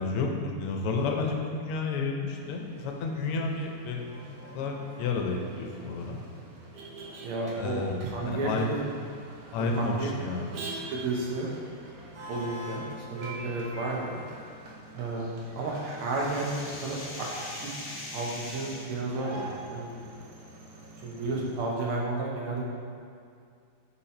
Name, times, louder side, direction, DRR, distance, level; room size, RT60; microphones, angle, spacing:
voice 1, 0.0-4.0 4.5-6.2 7.6-8.7 9.5-10.6 21.3-21.4, left 3 dB, 90° left, 2 dB, 1.6 m, -31 dB
Motor vehicle (road), 2.4-21.6, right 2 dB, 55° right, 1.1 m, -45 dB
voice 2, 7.2-8.8 9.8-10.1 10.9-11.5 12.3-14.2 15.0-15.3 15.6-17.3 17.5-17.7 18.1-20.1 21.0-22.6, right 2 dB, 75° right, -2 dB, 1.8 m, -32 dB
sound 1, 10.7-10.8 12.0-12.1 12.7-12.8 13.0-15.0 16.1-16.2 16.6-16.7 17.0-17.4 17.8-17.9 18.0-18.1 18.5-18.6, right 2 dB, 30° right, 0.8 m, -46 dB
sound 2, 15.2-19.0, left 2 dB, 40° left, 1.1 m, -42 dB
5.7 x 4.4 x 4.2 m, 2.3 s
omnidirectional pair, 2.4 m